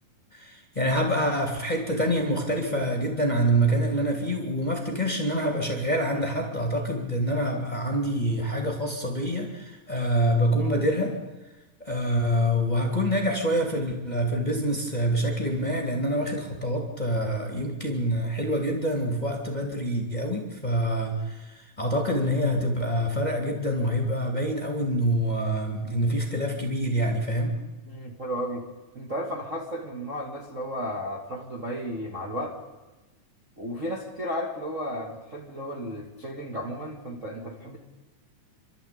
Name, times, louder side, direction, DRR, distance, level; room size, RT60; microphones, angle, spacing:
voice 1, 0.3-11.1 11.8-27.6, equal, 15° left, 2 dB, 2.7 m, -26 dB
voice 2, 27.9-28.6 28.9-32.6 33.6-37.8, equal, 25° right, -2 dB, 2.3 m, -33 dB
28.5 x 13.0 x 8.7 m, 1.1 s
omnidirectional pair, 3.9 m